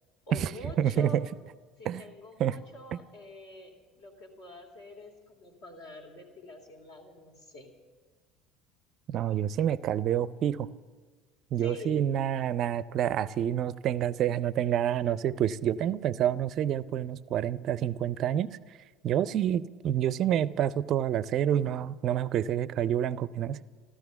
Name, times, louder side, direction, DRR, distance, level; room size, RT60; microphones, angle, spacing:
voice 1, 0.3-1.2 1.8-7.7 11.6-12.0, left 2 dB, 55° left, 3 dB, 2.4 m, -46 dB
voice 2, 0.8-1.3 1.8-2.0 2.4-2.6 9.1-10.7 11.5-18.6 19.0-23.6, right 10 dB, 45° right, 19 dB, 0.4 m, -28 dB
15.0 x 12.5 x 6.9 m, 1.5 s
figure-of-eight pair, 65°, 0 cm